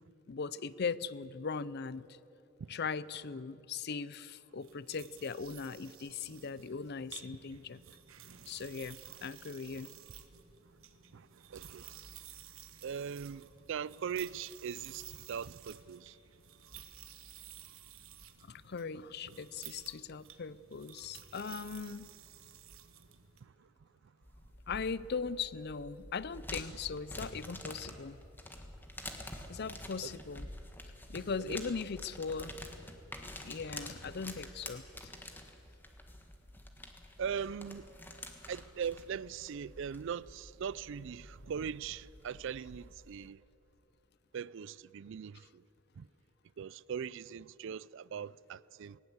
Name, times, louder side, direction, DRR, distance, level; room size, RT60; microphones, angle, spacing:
voice 1, 0.3-2.1 2.7-7.8 8.5-9.9 18.4-22.1 24.7-28.2 29.5-30.5 31.1-32.5 33.4-35.1, left 5 dB, 50° left, 0.5 m, -39 dB
sound 1, 4.6-23.4, right 9 dB, 80° right, 1.3 m, -53 dB
voice 2, 11.1-12.2 12.8-16.2 19.3-19.4 23.4-24.1 30.0-30.1 31.4-31.6 37.2-37.9 38.5-43.4 44.3-45.6 46.0-46.1 46.6-49.0, right 7 dB, 60° right, 0.4 m, -41 dB
sound 2, 24.2-43.3, left 1 dB, 10° left, 1.6 m, -48 dB
19.5 x 19.0 x 8.1 m
head